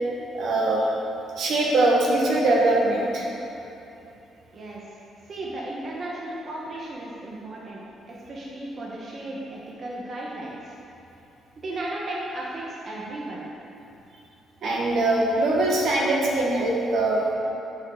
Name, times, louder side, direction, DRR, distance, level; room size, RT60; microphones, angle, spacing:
voice 1, 0.3-0.8 1.4-3.3 14.6-17.2, right 2 dB, 70° right, -3 dB, 1.5 m, -22 dB
voice 2, 5.2-7.8 8.1-10.7 11.6-13.4, right 1 dB, 45° right, -4 dB, 1.3 m, -35 dB
6.4 x 5.6 x 6.5 m, 2.9 s
cardioid pair, 90°, 0 cm